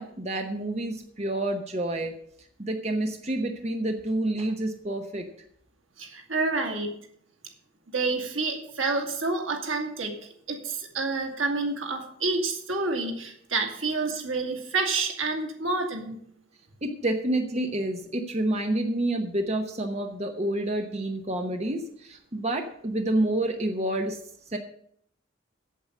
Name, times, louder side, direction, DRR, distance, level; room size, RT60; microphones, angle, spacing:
voice 1, 0.0-2.1 2.6-5.2 16.8-24.2 24.5-24.6, right 1 dB, 35° right, 4 dB, 0.9 m, -28 dB
voice 2, 6.0-6.9 7.9-10.1 10.5-16.2, right 3 dB, 85° right, 3 dB, 2.3 m, -28 dB
8.3 x 7.9 x 8.6 m, 0.66 s
head